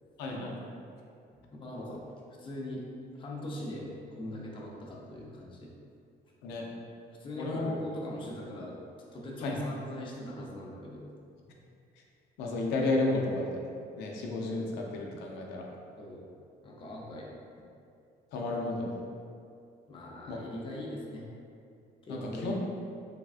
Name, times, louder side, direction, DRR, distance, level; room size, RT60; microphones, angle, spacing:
voice 1, 0.2-0.7 1.8-2.0 6.4-6.6 7.4-7.8 9.4-9.6 12.4-13.6 14.0-15.7 18.3-18.9 20.3-20.4 22.1-22.6, left 2 dB, 85° left, -1 dB, 0.4 m, -32 dB
voice 2, 1.5-2.1 2.4-2.8 3.1-3.9 4.2-5.7 7.1-8.8 9.1-11.1 16.0-16.3 16.6-17.3 19.9-21.3 22.0-22.6, left 1 dB, 30° left, -3 dB, 0.5 m, -40 dB
3.3 x 2.3 x 2.4 m, 2.4 s
cardioid pair, 110°, 17 cm